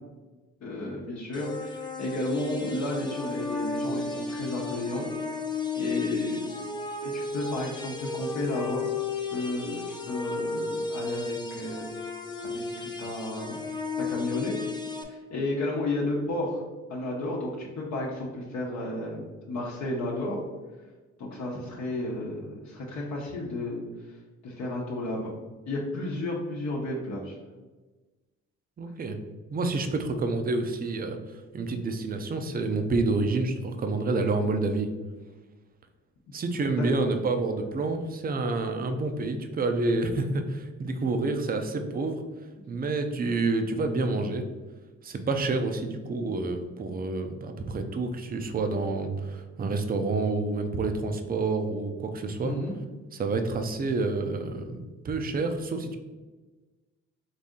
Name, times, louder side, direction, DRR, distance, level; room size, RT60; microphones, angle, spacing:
voice 1, 0.6-5.1 5.8-6.5 7.0-8.8 9.3-11.9 12.5-12.6 13.0-13.6 14.0-14.5 15.0-16.6 16.9-20.4 21.2-23.8 24.4-25.3 25.7-27.4 36.7-36.9 52.4-52.7, left 1 dB, 65° left, -3 dB, 0.9 m, -32 dB
sound 1, 1.3-15.0, left 4 dB, 15° left, 0.6 m, -34 dB
voice 2, 28.8-29.2 29.5-31.2 31.5-34.9 36.3-42.2 42.7-44.5 45.0-52.5 53.1-56.0, right 3 dB, 30° right, 7 dB, 0.5 m, -28 dB
4.1 x 2.7 x 3.6 m, 1.2 s
cardioid pair, 90°, 30 cm